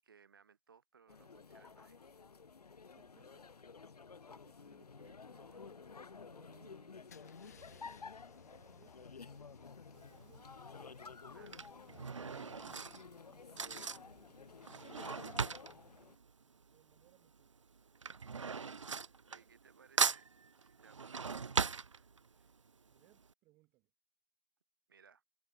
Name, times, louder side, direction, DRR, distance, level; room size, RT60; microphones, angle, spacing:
voice 1, 0.0-2.1 11.3-11.7 19.0-22.1 22.3-22.5 24.9-25.2, right 6 dB, 35° right, 7.4 m, -65 dB
sound 1, 1.1-16.2, left 5 dB, 75° left, 0.9 m, -53 dB
voice 2, 3.0-3.9 4.2-10.5 13.3-17.6 19.3-19.5 22.8-23.9, right 20 dB, 10° right, 6.9 m, -69 dB
Car / Engine starting / Idling, 7.1-12.9, left 7 dB, 25° left, 2.0 m, -64 dB
Drawer open or close / Cutlery silverware, 10.0-10.4 11.2-17.1 17.3-19.7 20.0-22.5 22.9-23.0 23.2-23.3, right 5 dB, 50° right, 0.6 m, -38 dB
hypercardioid pair, 175°, 20 cm